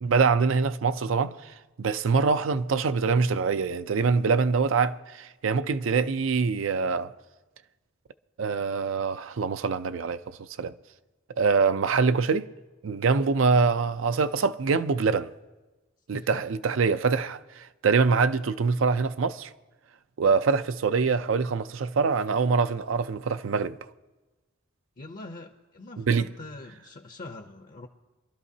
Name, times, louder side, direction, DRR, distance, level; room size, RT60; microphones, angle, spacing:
voice 1, 0.0-7.1 8.4-10.7 11.4-12.5 12.8-15.3 16.1-19.5 20.2-23.8 26.0-26.3, right 5 dB, 75° right, 0.5 m, -24 dB
voice 2, 16.1-16.4 20.2-20.4 25.0-27.9, left 2 dB, 45° left, 0.6 m, -43 dB
24.0 x 12.0 x 2.8 m
head